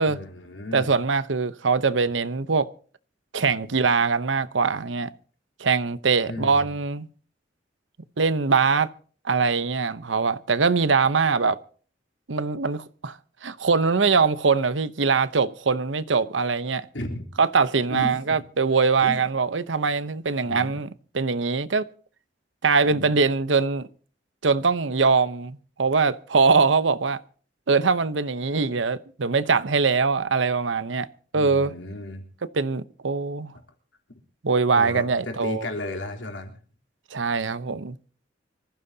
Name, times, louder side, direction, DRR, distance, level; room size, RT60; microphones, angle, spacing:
voice 1, 0.1-0.9 3.6-3.7 6.3-6.7 16.9-17.2 17.9-18.4 19.0-19.2 20.5-20.7 22.9-23.1 31.3-32.2 34.8-36.5, left 1 dB, 80° left, 3.6 m, -34 dB
voice 2, 0.7-2.7 3.3-5.1 5.6-7.1 8.2-8.9 9.2-11.6 12.3-16.9 17.4-21.9 22.6-23.9 24.4-27.2 27.7-31.1 31.3-31.7 32.5-33.5 34.4-35.7 37.1-38.0, right 4 dB, 85° right, 0.8 m, -22 dB
25.5 x 15.0 x 2.8 m
head